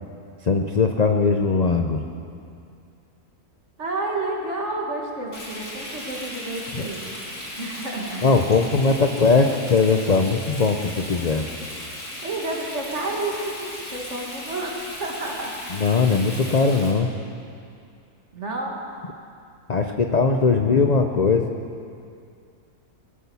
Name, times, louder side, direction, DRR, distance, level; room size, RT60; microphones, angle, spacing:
voice 1, 0.5-2.0 8.2-11.5 15.8-17.1 19.7-21.5, left 4 dB, 50° left, 4 dB, 0.5 m, -20 dB
voice 2, 3.8-7.0 7.6-8.4 12.2-15.9 18.3-18.8, right 2 dB, 50° right, -1 dB, 2.3 m, -30 dB
Frying (food), 5.3-16.9, left 1 dB, 80° left, 3.4 m, -36 dB
20.5 x 8.7 x 7.0 m, 2.4 s
omnidirectional pair, 1.6 m